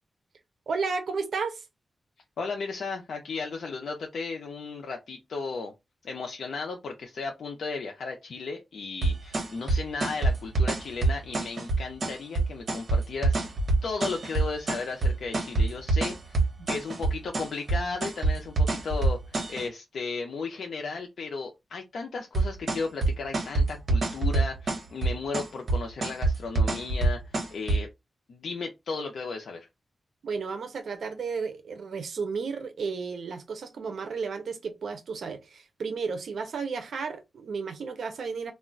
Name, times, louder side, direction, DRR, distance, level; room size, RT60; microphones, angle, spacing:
voice 1, 0.7-1.7 16.6-16.7 30.2-38.5, right 5 dB, 85° right, 0.5 m, -33 dB
voice 2, 2.4-5.7 6.0-13.4 13.8-16.4 16.7-27.9 28.3-29.7, left 4 dB, 85° left, 0.5 m, -35 dB
sound 1, 9.0-19.7 22.3-27.8, right 2 dB, 55° right, 1.0 m, -25 dB
2.3 x 2.1 x 3.7 m
wide cardioid pair, 110°, 0 cm